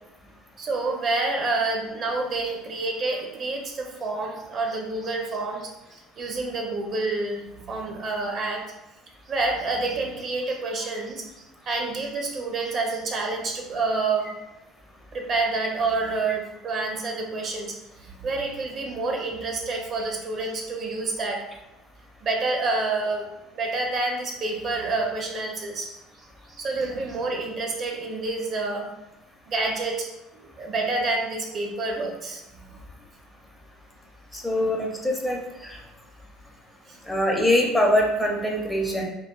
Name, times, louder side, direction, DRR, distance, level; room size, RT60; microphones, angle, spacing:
voice 1, 0.6-8.6 9.3-11.2 11.7-14.3 15.1-21.4 22.2-23.3 23.5-28.9 29.5-30.1 30.6-32.8 36.9-37.0, right 3 dB, 45° right, 1 dB, 0.5 m, -28 dB
voice 2, 34.3-35.8 37.1-39.0, left 1 dB, 10° left, 0 dB, 0.6 m, -23 dB
2.4 x 2.2 x 2.2 m, 0.99 s
hypercardioid pair, 65°, 0 cm